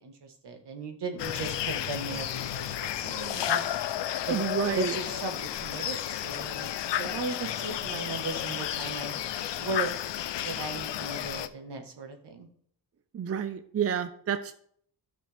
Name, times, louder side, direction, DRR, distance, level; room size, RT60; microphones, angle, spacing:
voice 1, 0.0-3.8 4.2-4.4 4.7-6.7 7.0-9.1 9.6-9.9 10.4-12.5, right 3 dB, 70° right, 5 dB, 1.5 m, -37 dB
sound 1, 1.2-11.5, left 11 dB, 80° left, 0.6 m, -32 dB
voice 2, 4.3-5.0 13.1-14.5, right 8 dB, 35° right, 11 dB, 0.5 m, -29 dB
12.0 x 6.2 x 3.4 m, 0.64 s
cardioid pair, 70°, 42 cm